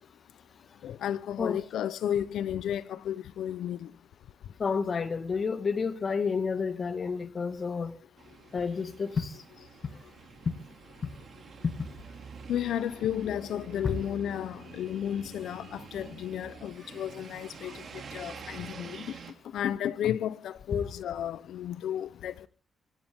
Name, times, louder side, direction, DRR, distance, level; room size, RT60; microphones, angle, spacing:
voice 1, 0.8-3.9 12.5-17.8 18.1-19.1 19.5-22.5, left 10 dB, 85° left, 0.8 m, -33 dB
voice 2, 4.6-8.0 8.5-9.4 10.5-10.6 11.6-11.9 13.8-14.0 16.8-17.0 17.7-17.8 20.7-20.8, left 5 dB, 45° left, 1.8 m, -30 dB
sound 1, 8.2-19.3, right 6 dB, 60° right, 2.8 m, -47 dB
24.5 x 15.0 x 3.7 m
cardioid pair, 95°, 0 cm